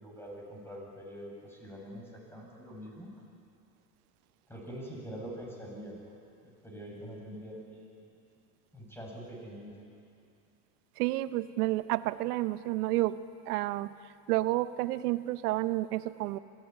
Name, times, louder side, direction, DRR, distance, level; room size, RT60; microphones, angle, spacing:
voice 1, 0.0-3.1 4.5-6.1 6.4-8.0 8.7-9.7, equal, 5° left, -1 dB, 7.9 m, -44 dB
voice 2, 11.0-13.2 13.5-16.4, right 17 dB, 80° right, 14 dB, 1.0 m, -30 dB
24.0 x 17.0 x 9.9 m, 2.5 s
supercardioid pair, 100°, 45 cm